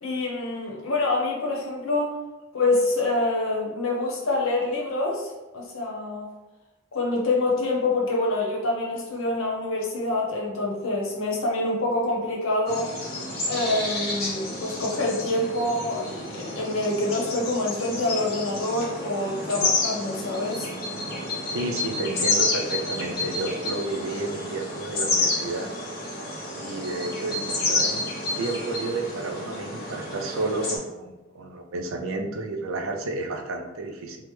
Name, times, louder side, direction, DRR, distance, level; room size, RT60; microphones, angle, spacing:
voice 1, 0.0-2.2 2.5-6.3 6.9-12.9 13.5-20.7, left 2 dB, 85° left, -2 dB, 0.8 m, -26 dB
sound 1, 12.7-30.8, left 2 dB, 50° left, 0.8 m, -30 dB
voice 2, 21.5-25.7 26.5-34.2, right 2 dB, 90° right, 4 dB, 0.4 m, -31 dB
3.2 x 2.0 x 3.1 m, 1.1 s
head